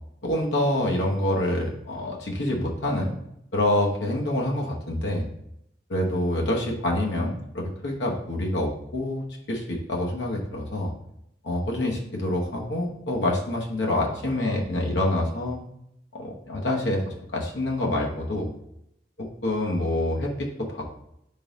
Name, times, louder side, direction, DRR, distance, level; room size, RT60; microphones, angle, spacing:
voice 1, 0.2-3.1 3.5-5.3 5.9-10.9 11.4-15.6 16.1-18.5 19.2-21.0, left 1 dB, 85° left, -1 dB, 0.9 m, -26 dB
3.9 x 3.8 x 3.6 m, 0.79 s
head